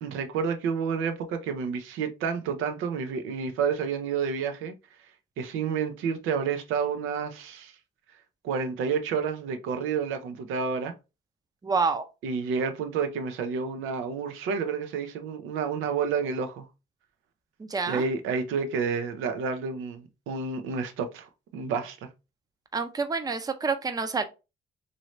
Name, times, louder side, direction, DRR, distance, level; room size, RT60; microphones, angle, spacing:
voice 1, 0.0-4.7 5.4-7.7 8.4-10.9 12.2-16.6 17.9-21.3 21.5-22.1, right 6 dB, 90° right, 0.5 m, -30 dB
voice 2, 11.6-12.0 17.6-18.1 22.7-24.2, right 4 dB, 20° right, 0.5 m, -28 dB
3.0 x 2.7 x 3.0 m
cardioid pair, 90°, 20 cm